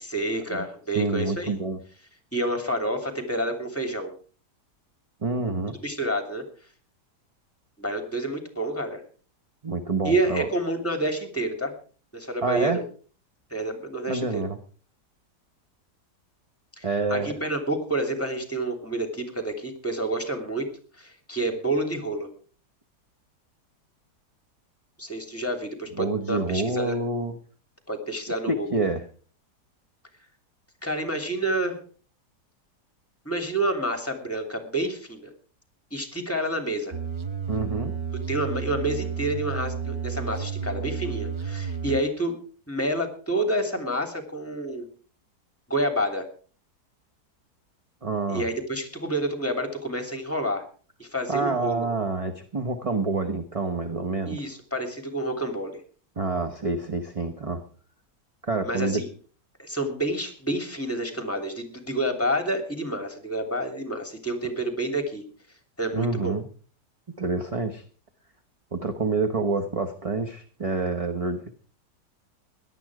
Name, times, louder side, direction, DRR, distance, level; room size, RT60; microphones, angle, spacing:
voice 1, 0.0-1.5 2.3-4.1 5.8-6.4 7.8-9.0 10.0-11.7 12.1-12.8 13.5-14.4 16.8-20.7 21.0-22.3 25.0-26.9 27.9-28.8 30.8-31.8 33.2-35.3 35.9-36.9 38.3-42.4 42.7-44.9 45.7-46.2 48.3-50.6 51.0-51.9 54.3-55.7 58.6-59.1 59.6-65.2 65.8-66.4, right 1 dB, 10° left, 6 dB, 2.9 m, -29 dB
voice 2, 0.9-1.8 5.2-5.8 9.6-10.5 12.4-12.8 14.1-14.6 16.8-17.3 26.0-27.3 28.5-29.0 37.5-37.9 48.0-48.5 51.3-54.4 56.2-57.6 58.4-59.0 65.9-66.5 67.2-67.8 68.7-71.5, right 3 dB, 25° right, 6 dB, 1.0 m, -27 dB
sound 1, 36.9-42.0, right 6 dB, 55° right, 0.3 m, -31 dB
17.5 x 11.5 x 4.9 m, 0.41 s
omnidirectional pair, 1.8 m